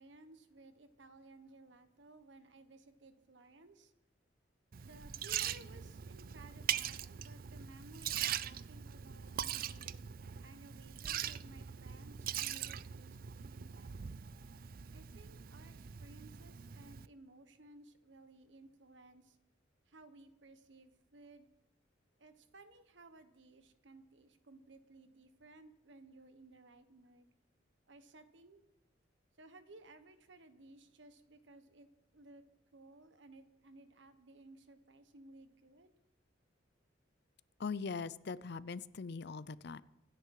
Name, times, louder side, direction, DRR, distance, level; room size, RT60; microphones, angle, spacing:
voice 1, 0.0-3.9 4.8-10.0 10.4-14.2 14.9-19.4 19.9-21.5 22.2-27.3 27.9-28.6 29.4-32.4 32.7-35.9, right 2 dB, 75° right, 10 dB, 1.3 m, -58 dB
Liquid, 4.7-17.1, right 10 dB, 50° right, 0.5 m, -42 dB
voice 2, 37.6-39.8, left 5 dB, 60° left, 18 dB, 0.5 m, -41 dB
26.0 x 9.9 x 4.8 m, 0.90 s
head